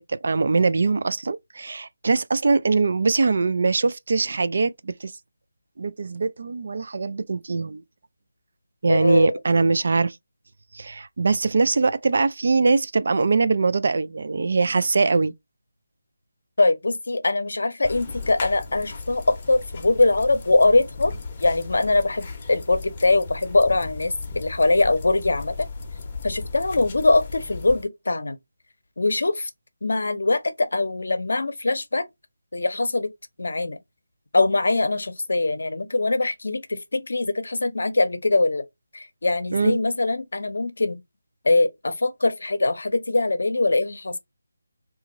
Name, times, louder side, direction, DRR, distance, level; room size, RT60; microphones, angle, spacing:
voice 1, 0.1-5.1 5.8-7.8 8.8-10.2 10.7-15.3 39.5-39.8, right 4 dB, 55° right, 0.3 m, -22 dB
voice 2, 8.9-9.4 16.6-21.1 21.4-25.7 26.2-28.4 29.0-29.5 29.8-32.0 32.5-33.1 33.4-33.8 34.3-38.6 38.9-41.0 41.4-44.1, left 2 dB, 75° left, 0.6 m, -22 dB
sound 1, 17.8-27.9, left 4 dB, 30° left, 0.7 m, -36 dB
2.9 x 2.4 x 3.8 m
figure-of-eight pair, 165°, 0 cm